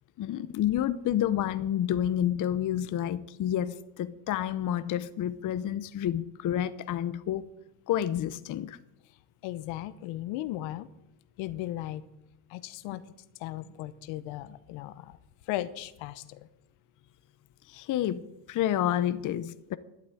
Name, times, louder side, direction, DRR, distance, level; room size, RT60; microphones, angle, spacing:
voice 1, 0.2-7.4 7.9-8.8 17.7-18.2 18.5-19.8, left 11 dB, 40° left, 0.8 m, -29 dB
voice 2, 9.4-10.9 11.4-12.0 12.5-13.0 13.4-15.2 15.5-16.4, left 14 dB, 70° left, 1.0 m, -36 dB
12.0 x 8.3 x 9.0 m
cardioid pair, 115°, 47 cm